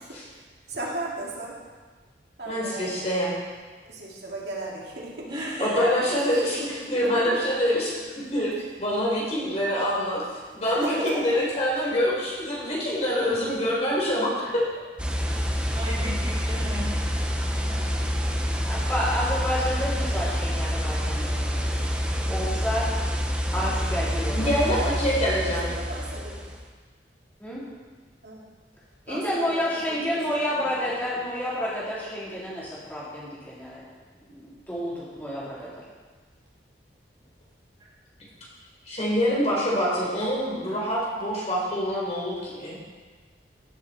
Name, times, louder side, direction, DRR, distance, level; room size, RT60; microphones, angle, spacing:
voice 1, 0.0-0.4 0.7-1.5 2.4-2.9 3.9-5.3 5.7-6.4 25.4-26.5 28.2-28.4 29.1-31.0, right 2 dB, 65° right, -4 dB, 2.6 m, -37 dB
voice 2, 2.5-3.3 5.6-7.9 8.3-10.2 10.5-14.6 24.3-25.6 38.9-42.8, equal, 40° left, -5 dB, 4.0 m, -25 dB
voice 3, 5.3-5.8 6.3-6.4 10.7-10.9 15.2-17.0 17.6-18.1 18.8-18.9, equal, 25° right, -7 dB, 4.0 m, -35 dB
sound 1, 15.0-26.6, equal, 5° right, 0.9 m, -27 dB
voice 4, 18.7-22.9 23.5-24.5 27.4-27.7 29.1-33.8 34.2-35.7, equal, 10° left, -9 dB, 3.6 m, -30 dB
16.0 x 7.5 x 4.4 m, 1.4 s
head